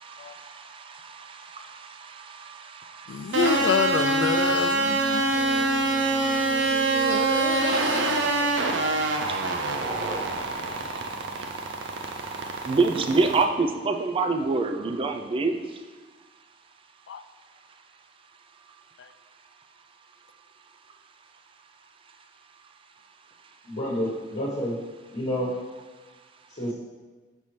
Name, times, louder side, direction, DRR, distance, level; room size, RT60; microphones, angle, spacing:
voice 1, 0.0-0.4 1.1-1.8 2.5-3.4 4.8-4.9 6.0-6.5 6.8-6.9 8.1-8.2 9.2-11.3 12.6-15.6, right 3 dB, 30° right, 6 dB, 0.4 m, -28 dB
voice 2, 3.1-8.5 8.9-9.0 17.1-17.2 19.0-19.1, left 5 dB, 75° left, 10 dB, 0.3 m, -29 dB
sound 1, 3.3-13.5, right 3 dB, 85° right, 0.5 m, -25 dB
voice 3, 23.6-24.8 25.1-25.5 26.5-26.7, equal, 45° left, -7 dB, 1.1 m, -29 dB
5.8 x 5.3 x 3.1 m, 1.3 s
head